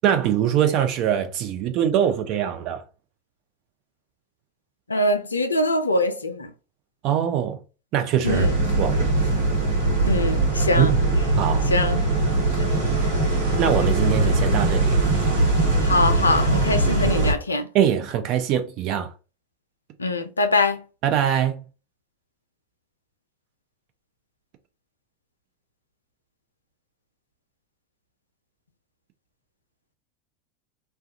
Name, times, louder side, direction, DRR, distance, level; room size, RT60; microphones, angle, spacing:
voice 1, 0.0-2.8 7.0-7.6 7.9-8.5 8.8-9.0 10.8-11.0 11.4-11.7 13.6-15.0 17.7-19.1 21.0-21.6, right 10 dB, 50° right, 0.5 m, -22 dB
voice 2, 4.9-6.5 8.2-8.5 10.0-10.9 11.7-12.0 15.8-17.7 20.0-20.8, left 2 dB, 85° left, 0.4 m, -23 dB
sound 1, 8.2-17.3, right 2 dB, 70° right, 1.0 m, -21 dB
2.3 x 2.2 x 2.7 m
figure-of-eight pair, 80°, 0 cm